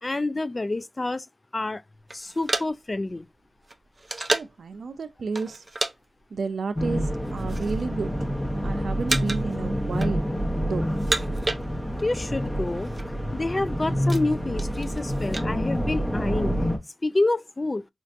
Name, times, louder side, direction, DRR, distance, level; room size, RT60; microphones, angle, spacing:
voice 1, 0.0-1.3 1.5-1.8 2.1-3.3 12.0-12.9 13.3-16.5 17.0-17.9, left 2 dB, 30° left, 0.3 m, -28 dB
sound 1, 2.1-4.7 5.3-5.9 6.2-6.4 7.1-7.9 8.2-8.6 9.1-9.6 9.8-10.5 10.9-12.1 12.4-12.5 12.7-13.1 13.5-15.5, right 2 dB, 30° right, 0.5 m, -31 dB
voice 2, 4.3-5.6 6.3-8.3 8.6-10.3 10.6-10.9, right 4 dB, 90° right, 0.4 m, -31 dB
sound 2, 6.7-16.8, equal, 15° left, 0.9 m, -28 dB
4.4 x 2.5 x 2.5 m
wide cardioid pair, 85°, 0 cm